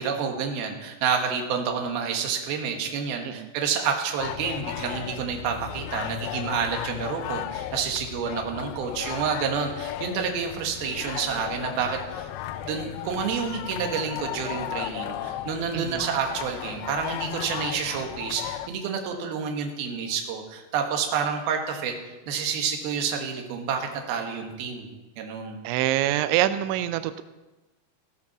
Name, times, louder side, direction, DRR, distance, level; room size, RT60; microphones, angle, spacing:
voice 1, 0.0-12.3 12.6-21.9 22.3-24.9 25.2-25.6, right 6 dB, 65° right, 3 dB, 3.1 m, -29 dB
sound 1, 4.2-18.7, left 12 dB, 90° left, 3.0 m, -35 dB
voice 2, 15.7-16.0 25.6-27.2, right 13 dB, 90° right, 12 dB, 2.9 m, -25 dB
15.5 x 8.7 x 6.0 m, 1.1 s
omnidirectional pair, 5.2 m